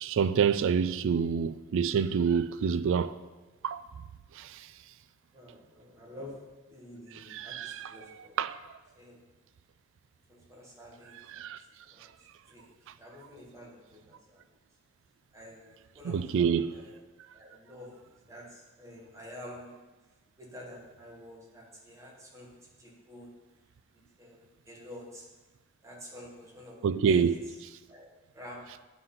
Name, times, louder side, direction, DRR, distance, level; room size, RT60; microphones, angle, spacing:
voice 1, 0.0-3.1 3.6-3.8 4.4-4.5 7.3-7.9 8.4-8.6 11.4-11.6 16.0-16.7 26.8-27.4, right 6 dB, 60° right, 0.3 m, -27 dB
voice 2, 5.3-6.4 6.7-8.5 9.0-9.2 10.3-11.4 11.8-12.1 12.5-12.7 13.0-14.4 15.3-17.0 17.3-19.7 20.4-23.3 23.9-25.3 25.8-26.8 27.1-27.6 27.9-28.1 28.3-28.6, left 1 dB, 15° right, 1.7 m, -49 dB
9.2 x 4.0 x 5.7 m
head